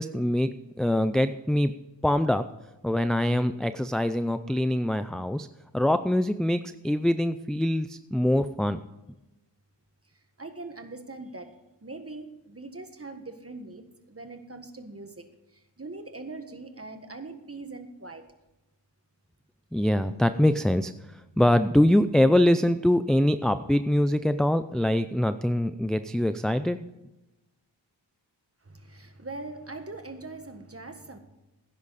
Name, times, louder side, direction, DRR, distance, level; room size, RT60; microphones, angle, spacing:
voice 1, 0.0-1.8 2.0-2.5 2.8-5.5 5.7-8.8 19.7-26.8, left 1 dB, ahead, 10 dB, 0.4 m, -24 dB
voice 2, 10.4-11.5 11.8-18.2 28.6-31.2, right 3 dB, 30° right, 7 dB, 1.6 m, -41 dB
17.5 x 10.5 x 4.1 m, 1.0 s
wide cardioid pair, 65°, 44 cm